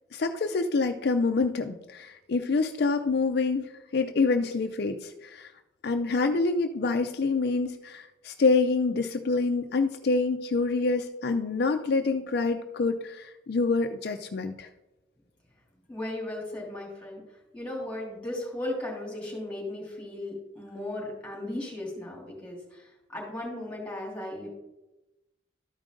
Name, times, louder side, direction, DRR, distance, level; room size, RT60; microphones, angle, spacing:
voice 1, 0.1-5.5 5.8-14.7, left 3 dB, 60° left, 6 dB, 0.5 m, -26 dB
voice 2, 15.9-17.2 17.5-24.5, left 1 dB, 5° left, -3 dB, 3.0 m, -36 dB
13.0 x 5.0 x 3.8 m, 0.97 s
head